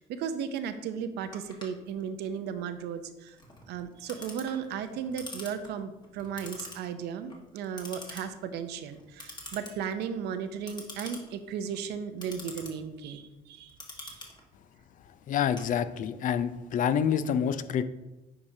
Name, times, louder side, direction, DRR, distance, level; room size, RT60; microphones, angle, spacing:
voice 1, 0.0-3.4 3.7-14.2, right 7 dB, 80° right, 9 dB, 0.6 m, -35 dB
Clock, 1.3-16.3, left 2 dB, 25° left, 1.4 m, -47 dB
voice 2, 15.3-17.8, left 8 dB, 50° left, 13 dB, 0.4 m, -27 dB
8.7 x 4.9 x 2.7 m, 1.0 s
cardioid pair, 110°, 17 cm